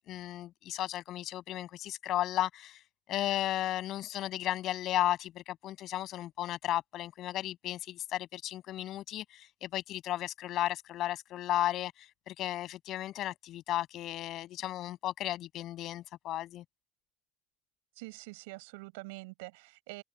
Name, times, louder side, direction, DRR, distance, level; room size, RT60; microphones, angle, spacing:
voice 1, 0.0-2.8 3.1-16.6, left 13 dB, 50° left, 6.9 m, -34 dB
voice 2, 18.0-20.0, right 26 dB, 80° right, 7.7 m, -45 dB
supercardioid pair, 105°, 0 cm